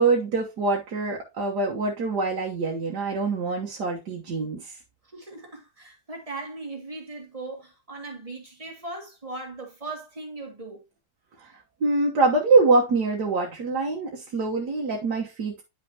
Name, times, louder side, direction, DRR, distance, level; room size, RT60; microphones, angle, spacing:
voice 1, 0.0-4.7 11.8-15.6, right 3 dB, 85° right, 1.8 m, -24 dB
voice 2, 5.1-10.8, right 2 dB, 20° right, 2.4 m, -38 dB
10.5 x 5.5 x 2.8 m
omnidirectional pair, 1.7 m